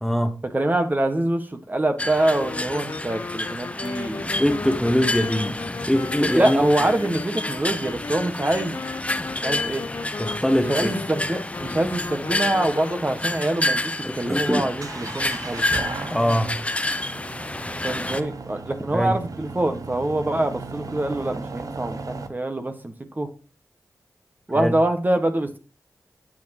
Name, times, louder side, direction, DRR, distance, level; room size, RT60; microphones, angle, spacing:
voice 1, 0.0-0.4 4.4-5.6 5.9-6.7 10.2-10.9 14.0-14.7 16.1-16.5 18.9-19.2 24.5-24.7, equal, 5° left, 1.4 m, -22 dB
voice 2, 0.5-4.3 6.1-8.9 9.4-9.8 10.7-15.8 17.8-23.3 24.5-25.6, right 1 dB, 30° right, 1.5 m, -25 dB
sound 1, 2.0-18.2, left 2 dB, 20° left, 0.9 m, -29 dB
sound 2, 2.3-13.3, left 4 dB, 55° left, 0.8 m, -36 dB
sound 3, 13.1-22.3, right 4 dB, 70° right, 1.0 m, -36 dB
10.5 x 6.8 x 3.0 m
cardioid pair, 45°, 6 cm